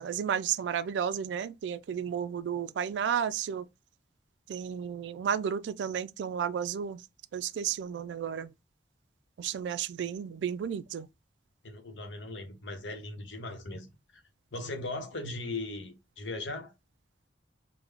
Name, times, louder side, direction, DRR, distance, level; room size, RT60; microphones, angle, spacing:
voice 1, 0.0-3.7 4.5-7.0 7.3-8.5 9.4-11.1, right 8 dB, 75° right, 0.3 m, -32 dB
voice 2, 11.6-13.9 14.1-14.2 14.5-16.7, left 2 dB, 85° left, 0.8 m, -38 dB
3.6 x 2.1 x 3.3 m
head